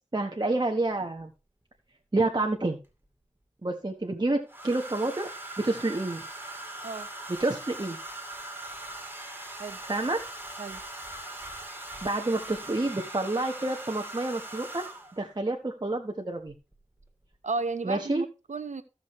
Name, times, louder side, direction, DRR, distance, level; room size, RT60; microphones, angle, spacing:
voice 1, 0.1-1.3 2.1-2.8 3.6-5.3 5.6-6.2 7.4-8.0 9.8-10.2 12.0-14.8 15.1-16.5 17.8-18.2, right 2 dB, 35° right, 1.2 m, -28 dB
Domestic sounds home sounds, 0.9-1.0 2.4-3.1 4.5-15.3 16.5-16.7 17.0-17.4, right 2 dB, 15° right, 2.3 m, -41 dB
voice 2, 17.4-18.8, right 4 dB, 85° right, 0.9 m, -33 dB
15.0 x 6.3 x 3.1 m
wide cardioid pair, 45°, 12 cm